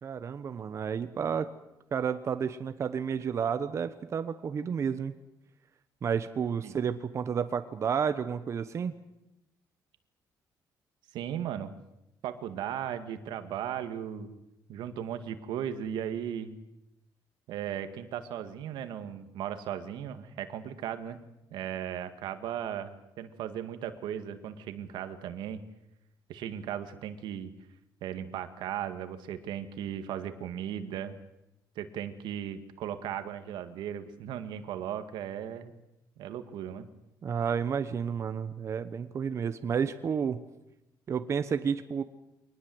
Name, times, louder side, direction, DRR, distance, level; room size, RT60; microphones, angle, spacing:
voice 1, 0.0-1.5 1.9-5.2 6.0-8.9 37.2-40.4 41.1-42.0, right 7 dB, 40° right, 10 dB, 1.1 m, -31 dB
voice 2, 11.1-11.7 12.2-14.4 14.7-16.6 17.5-21.2 21.5-25.6 26.3-27.5 28.0-31.2 31.8-35.7 36.2-36.9, right 9 dB, 85° right, 9 dB, 2.0 m, -37 dB
24.5 x 19.5 x 7.9 m, 0.90 s
cardioid pair, 135°, 8 cm